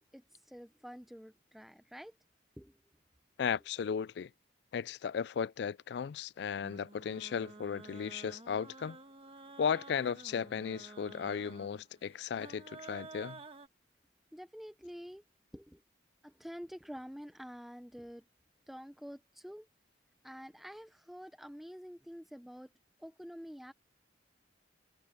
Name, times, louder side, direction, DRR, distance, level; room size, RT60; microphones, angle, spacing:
voice 1, 0.1-2.1 2.6-2.8 14.3-15.2 15.5-15.8 16.2-18.2 18.7-19.7 20.2-22.7 23.0-23.7, equal, ahead, 0.6 m, -48 dB
voice 2, 3.4-4.3 4.7-9.0 9.6-13.4, left 7 dB, 60° left, 0.3 m, -35 dB
sound 1, 6.6-13.7, right 3 dB, 30° right, 1.3 m, -51 dB
head